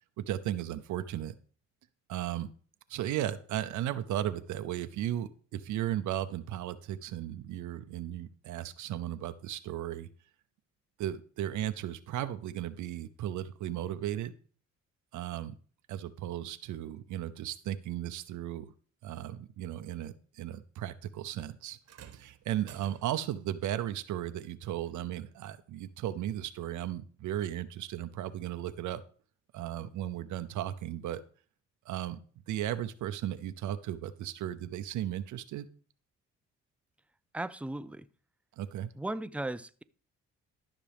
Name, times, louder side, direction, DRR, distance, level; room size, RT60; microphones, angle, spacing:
voice 1, 0.2-1.3 2.1-2.5 2.9-10.1 11.0-14.3 15.1-15.5 15.9-18.7 19.0-21.8 22.1-29.0 29.5-31.2 31.9-32.2 32.5-35.7 38.6-38.9, right 12 dB, 80° right, 0.7 m, -35 dB
sound 1, 21.8-23.4 24.9-25.0 25.9-26.0, right 8 dB, 55° right, 1.1 m, -53 dB
voice 2, 37.3-38.1 39.0-39.8, right 1 dB, 5° right, 0.4 m, -36 dB
13.0 x 6.0 x 3.5 m
cardioid pair, 90°, 30 cm